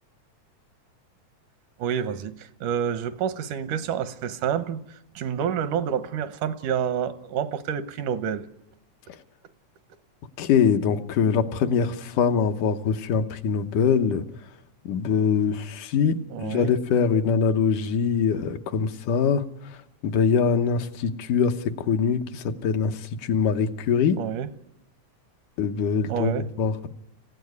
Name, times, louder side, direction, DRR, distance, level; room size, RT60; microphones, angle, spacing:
voice 1, 1.8-4.8 5.2-8.5 16.3-16.7 24.2-24.5 26.1-26.5, right 8 dB, 85° right, 2.5 m, -28 dB
voice 2, 10.4-14.2 14.9-19.4 20.0-24.2 25.6-26.9, left 6 dB, 80° left, 2.6 m, -23 dB
25.5 x 16.0 x 9.6 m
omnidirectional pair, 3.5 m